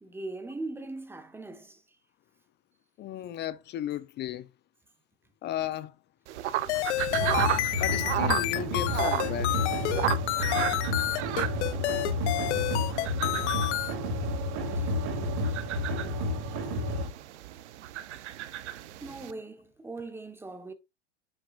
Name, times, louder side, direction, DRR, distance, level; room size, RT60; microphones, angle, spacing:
voice 1, 0.0-1.8 14.6-15.1 15.4-15.7 18.9-20.7, right 2 dB, 5° right, 1.3 m, -41 dB
voice 2, 3.0-4.5 5.4-5.9 7.8-9.7, left 11 dB, 30° left, 0.6 m, -35 dB
sound 1, 6.3-19.3, right 13 dB, 75° right, 1.0 m, -35 dB
sound 2, 6.7-13.9, left 17 dB, 75° left, 0.6 m, -29 dB
sound 3, 7.1-17.1, left 1 dB, 50° right, 2.8 m, -31 dB
9.7 x 6.3 x 2.5 m
hypercardioid pair, 120°, 35 cm